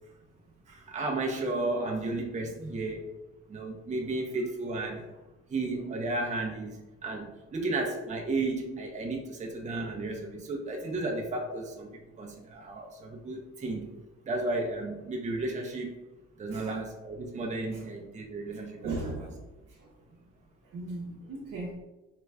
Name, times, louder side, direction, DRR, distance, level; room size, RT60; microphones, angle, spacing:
voice 1, 0.7-3.1 3.5-5.2 5.5-16.0 16.4-19.2, right 2 dB, 25° right, 1 dB, 0.5 m, -33 dB
voice 2, 18.8-19.4 19.8-20.2 20.7-21.7, right 2 dB, 60° right, -6 dB, 0.8 m, -37 dB
3.4 x 3.0 x 2.3 m, 1.1 s
cardioid pair, 90°, 30 cm